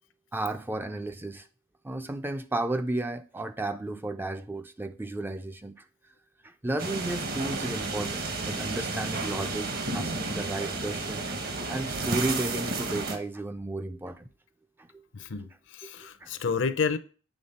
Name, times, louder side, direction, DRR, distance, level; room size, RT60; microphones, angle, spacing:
voice 1, 0.3-1.5 1.8-5.8 6.4-14.3 14.9-15.0 16.2-16.3 16.6-16.7, right 2 dB, 10° right, 0.3 m, -33 dB
sound 1, 6.8-13.2, right 3 dB, 50° right, 1.0 m, -32 dB
voice 2, 15.1-17.0, left 5 dB, 60° left, 0.6 m, -30 dB
8.0 x 3.6 x 5.5 m
head